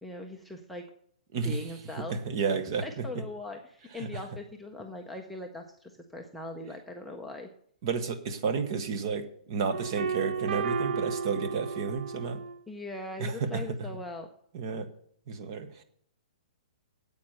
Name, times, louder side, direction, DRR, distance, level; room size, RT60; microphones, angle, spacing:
voice 1, 0.0-0.8 1.4-2.2 2.8-7.5 12.7-14.3, left 2 dB, ahead, -1 dB, 0.5 m, -40 dB
voice 2, 2.1-3.0 4.0-4.1 7.8-12.4 13.2-13.6 14.5-14.9 15.3-15.7, right 5 dB, 30° right, 9 dB, 1.0 m, -31 dB
sound 1, 9.7-12.6, right 5 dB, 90° right, 1.1 m, -33 dB
8.8 x 8.5 x 6.4 m, 0.63 s
hypercardioid pair, 180°, 4 cm